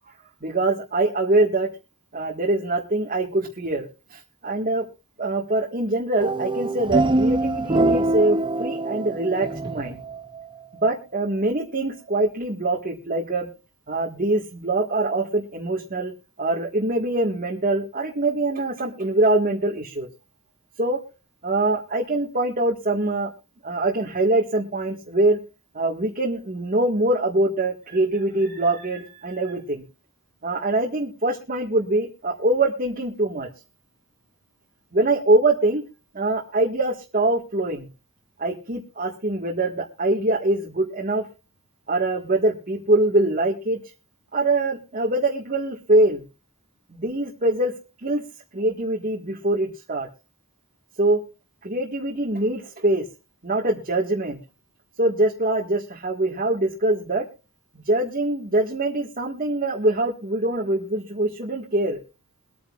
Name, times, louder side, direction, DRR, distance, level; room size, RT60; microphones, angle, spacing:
voice 1, 0.4-1.7 2.1-4.8 5.2-10.0 10.7-13.5 13.9-16.1 16.4-20.1 20.8-21.0 21.4-23.3 23.6-25.4 25.7-29.8 30.4-33.5 34.9-35.8 36.1-37.9 38.4-41.3 41.9-43.8 44.3-46.2 46.9-47.7 48.0-48.2 48.5-50.1 51.0-51.2 51.6-53.0 53.4-54.4 55.0-57.3 57.7-62.0, right 2 dB, 40° right, -1 dB, 1.7 m, -23 dB
sound 1, 6.2-10.5, right 2 dB, 20° right, 0.6 m, -24 dB
23.5 x 9.4 x 2.4 m, 0.32 s
head